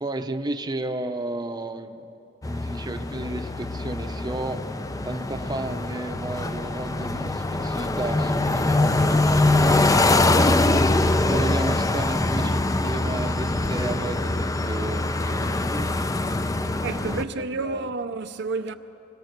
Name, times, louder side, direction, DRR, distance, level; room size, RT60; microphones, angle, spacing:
voice 1, 0.0-2.1 2.4-4.6 5.0-9.8 11.2-15.9 16.6-17.9, right 2 dB, 20° right, 0.8 m, -33 dB
sound 1, 2.4-17.2, left 2 dB, 15° left, 0.5 m, -23 dB
voice 2, 16.8-18.7, right 3 dB, 60° right, 0.7 m, -30 dB
25.0 x 21.5 x 6.7 m
head